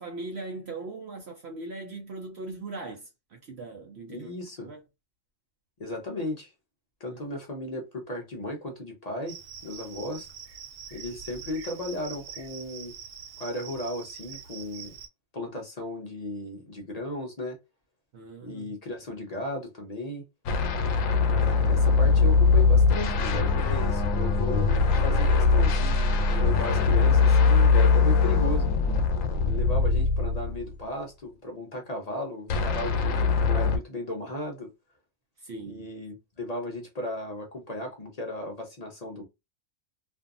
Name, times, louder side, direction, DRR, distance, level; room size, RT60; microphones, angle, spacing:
voice 1, 0.0-4.3 4.6-4.8 7.1-7.2 18.1-18.8 35.4-35.9, right 3 dB, 60° right, 0.8 m, -40 dB
voice 2, 4.1-4.7 5.8-6.5 7.0-9.4 9.6-10.3 10.9-12.9 13.4-15.0 15.3-17.6 18.4-20.2 21.3-28.7 29.4-34.7 35.7-39.2, left 1 dB, 45° left, 0.5 m, -35 dB
Cricket, 9.3-15.1, right 7 dB, 90° right, 1.0 m, -44 dB
sound 1, 20.5-30.7 32.5-33.8, left 4 dB, 85° left, 1.0 m, -22 dB
2.5 x 2.4 x 2.5 m
omnidirectional pair, 1.4 m